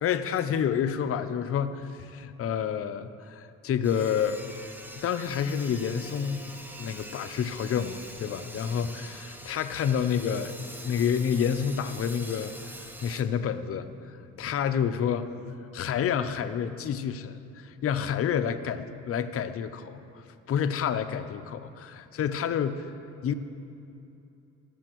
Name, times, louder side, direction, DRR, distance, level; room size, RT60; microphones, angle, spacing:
voice 1, 0.0-4.4 4.9-6.4 6.8-12.5 13.0-15.5 15.7-22.9 23.2-23.3, left 8 dB, 50° left, 10 dB, 0.6 m, -29 dB
Sawing, 3.8-13.2, right 1 dB, 5° right, 0.7 m, -44 dB
16.5 x 7.0 x 3.0 m, 2.7 s
cardioid pair, 90°, 30 cm